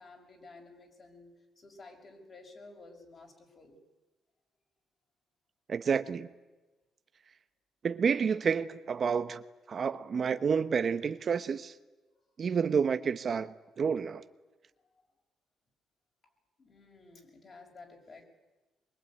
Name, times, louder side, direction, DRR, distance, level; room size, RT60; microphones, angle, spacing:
voice 1, 0.0-3.8 12.1-12.3 15.0-15.1 16.6-18.2, left 3 dB, 40° left, 6.2 m, -53 dB
voice 2, 5.7-6.3 7.8-9.4 9.7-11.7 12.4-14.2, right 6 dB, 50° right, 1.0 m, -29 dB
23.0 x 22.5 x 9.4 m
cardioid pair, 90°, 0 cm